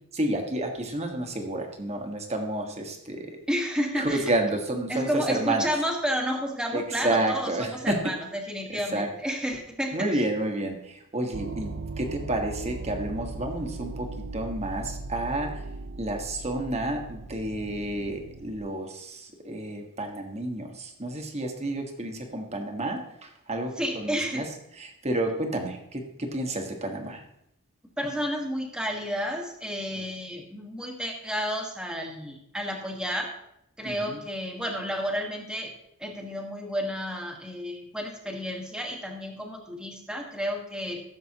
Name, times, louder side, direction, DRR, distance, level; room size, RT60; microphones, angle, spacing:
voice 1, 0.1-3.4 4.0-5.7 6.7-8.0 8.9-9.1 9.9-11.7 12.0-15.6 16.0-24.4 24.8-27.2 33.8-34.2, right 1 dB, 30° right, 4 dB, 1.4 m, -30 dB
voice 2, 3.5-4.3 4.9-10.2 23.8-24.5 28.0-33.3 33.8-35.7 36.0-41.0, equal, 5° right, 1 dB, 1.5 m, -31 dB
sound 1, 11.3-18.6, right 3 dB, 50° right, 0.6 m, -38 dB
15.5 x 7.4 x 2.9 m, 0.78 s
head